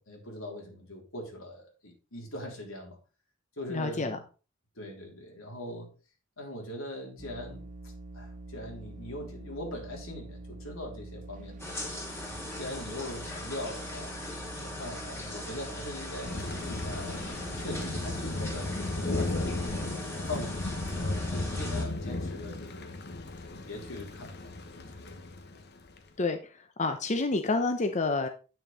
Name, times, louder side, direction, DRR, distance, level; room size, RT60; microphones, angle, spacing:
voice 1, 0.0-3.0 3.6-4.2 4.8-5.9 6.4-11.9 12.6-14.2 14.6-19.7 20.1-22.9 23.4-24.5 24.8-25.2, left 1 dB, 85° left, 1 dB, 3.4 m, -41 dB
voice 2, 3.7-4.2 26.2-28.3, left 3 dB, 35° left, 7 dB, 0.7 m, -29 dB
sound 1, 7.2-20.1, right 1 dB, 40° right, 1.3 m, -45 dB
sound 2, 11.6-21.9, left 1 dB, 10° left, 2.6 m, -40 dB
Thunder, 16.2-26.0, left 2 dB, 55° left, 1.2 m, -35 dB
9.1 x 6.4 x 4.0 m, 0.33 s
head